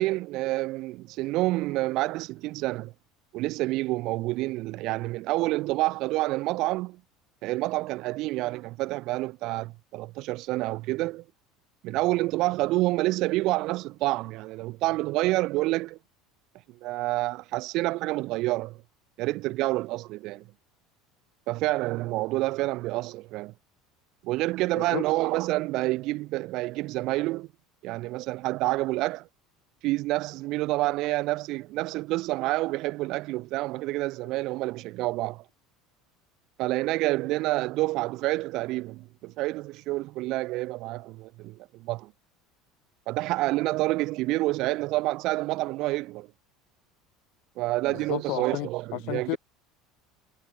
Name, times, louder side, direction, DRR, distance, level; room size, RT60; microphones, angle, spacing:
voice 1, 0.0-2.9 3.3-7.0 7.4-11.2 11.8-16.0 16.7-18.8 19.2-20.5 21.5-23.5 24.2-27.5 27.8-29.3 29.8-35.4 36.6-42.1 43.1-46.3 47.6-49.4, right 19 dB, 50° right, 0.5 m, -28 dB
voice 2, 47.9-49.4, left 29 dB, 60° left, 0.9 m, -33 dB
cardioid pair, 165°, 0 cm